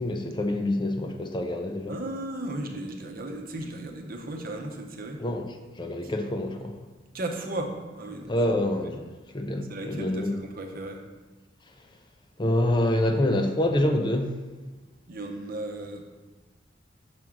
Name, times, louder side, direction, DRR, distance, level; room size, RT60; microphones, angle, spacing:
voice 1, 0.0-2.0 5.2-5.5 5.8-6.8 8.3-9.0 9.3-10.3 12.4-14.3, left 1 dB, 25° left, 5 dB, 0.5 m, -26 dB
voice 2, 1.9-5.2 7.1-8.3 9.7-11.0 15.1-16.1, right 1 dB, 55° right, 2 dB, 0.8 m, -35 dB
6.0 x 3.7 x 5.9 m, 1.3 s
head